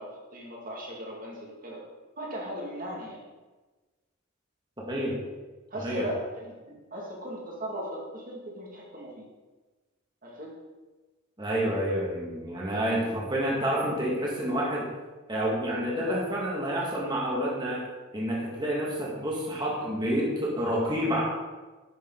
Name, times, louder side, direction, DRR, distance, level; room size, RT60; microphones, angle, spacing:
voice 1, 0.0-1.8 2.2-3.2 5.7-9.3 10.2-10.6, equal, 40° right, -2 dB, 2.3 m, -38 dB
voice 2, 4.9-5.2 5.8-6.1 11.4-14.9 15.3-17.8 18.1-21.2, equal, 20° right, -4 dB, 2.3 m, -28 dB
11.0 x 6.8 x 4.0 m, 1.2 s
head